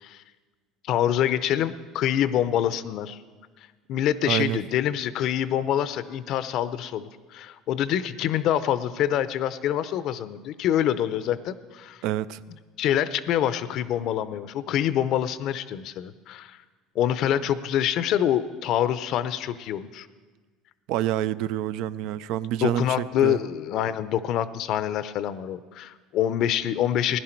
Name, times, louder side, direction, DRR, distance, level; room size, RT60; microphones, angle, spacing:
voice 1, 0.8-3.2 3.9-12.0 12.8-16.6 17.0-20.1 22.6-27.2, left 10 dB, 60° left, 0.6 m, -26 dB
voice 2, 4.2-4.6 12.0-12.4 20.9-23.4, right 13 dB, 70° right, 0.3 m, -27 dB
16.5 x 11.0 x 4.5 m
supercardioid pair, 120°, 0 cm